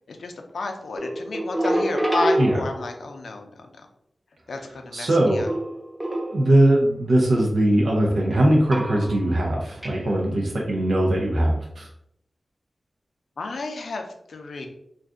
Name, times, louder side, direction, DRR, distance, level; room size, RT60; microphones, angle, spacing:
voice 1, 0.1-3.6 4.5-5.5 13.4-14.7, left 3 dB, 90° left, 4 dB, 0.4 m, -31 dB
sound 1, 1.0-3.1 5.5-6.7 8.7-9.4 9.8-10.0, right 1 dB, 15° right, 0.4 m, -27 dB
voice 2, 4.9-5.5 6.3-11.9, right 1 dB, 85° right, -2 dB, 0.6 m, -20 dB
2.5 x 2.3 x 3.5 m, 0.74 s
wide cardioid pair, 115°, 0 cm